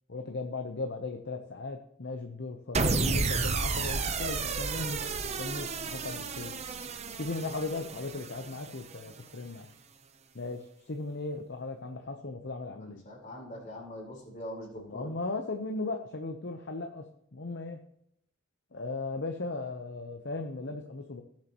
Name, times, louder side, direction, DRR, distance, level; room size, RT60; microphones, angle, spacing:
voice 1, 0.1-5.1 5.4-6.5 7.1-9.7 10.3-13.0 14.8-17.8 18.7-21.2, left 3 dB, 60° left, 4 dB, 0.9 m, -37 dB
sound 1, 2.7-9.1, right 4 dB, 35° right, 0.7 m, -32 dB
voice 2, 12.8-15.1, left 1 dB, 40° left, -3 dB, 4.5 m, -43 dB
18.0 x 7.4 x 3.0 m, 0.74 s
head